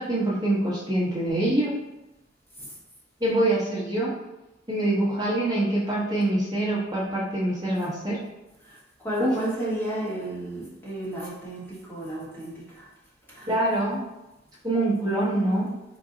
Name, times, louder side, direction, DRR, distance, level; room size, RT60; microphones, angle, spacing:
voice 1, 0.0-1.7 3.2-4.2 4.7-8.2 9.2-9.4 13.5-14.0 14.6-15.7, right 1 dB, 20° right, -7 dB, 0.8 m, -25 dB
voice 2, 8.6-12.9 13.3-13.6, right 1 dB, 10° left, -7 dB, 0.8 m, -33 dB
3.8 x 2.0 x 3.7 m, 0.96 s
head